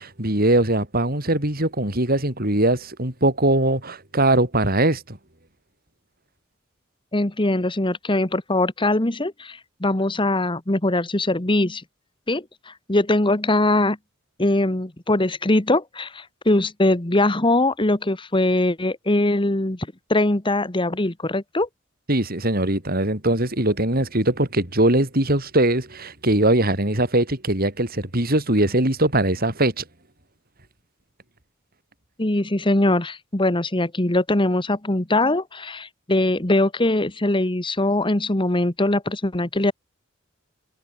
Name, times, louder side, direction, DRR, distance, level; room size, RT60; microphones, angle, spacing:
voice 1, 0.0-5.2 22.1-29.8, right 1 dB, 50° right, 6.1 m, -21 dB
voice 2, 7.1-11.8 12.3-14.0 14.4-21.7 32.2-39.7, left 2 dB, 25° left, 1.5 m, -22 dB
head